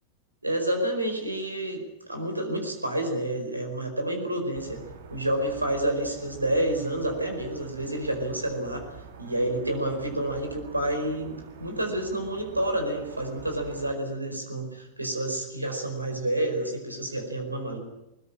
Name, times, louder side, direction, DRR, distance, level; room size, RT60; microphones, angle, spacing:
voice 1, 0.4-1.8 2.1-4.8 5.1-8.9 9.2-17.8, right 1 dB, 85° right, 5 dB, 4.9 m, -29 dB
sound 1, 4.5-13.9, right 6 dB, 60° right, 2.8 m, -46 dB
21.0 x 20.5 x 8.8 m, 0.94 s
figure-of-eight pair, 90°, 0 cm